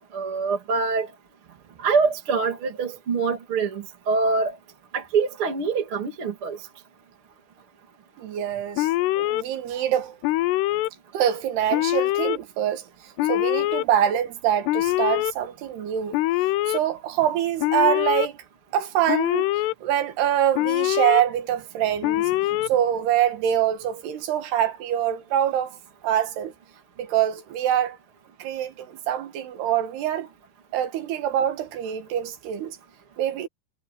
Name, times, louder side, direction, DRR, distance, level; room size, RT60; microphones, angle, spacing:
voice 1, 0.1-1.1 1.8-4.5 4.9-6.6, right 4 dB, 35° right, 3.1 m, -24 dB
voice 2, 8.2-8.9 9.2-10.2 11.1-12.9 13.3-16.2 16.7-18.4 18.7-19.4 19.8-25.8 26.0-26.5 27.0-28.0 28.4-30.3 30.7-32.8 33.2-33.5, right 10 dB, 80° right, 3.7 m, -25 dB
Alarm, 8.8-9.4 10.2-10.9 11.7-12.4 13.2-13.8 14.7-15.3 16.1-16.8 17.6-18.3 19.1-19.7 20.6-21.2 22.0-22.7, left 16 dB, 90° left, 2.8 m, -23 dB
omnidirectional pair, 4.7 m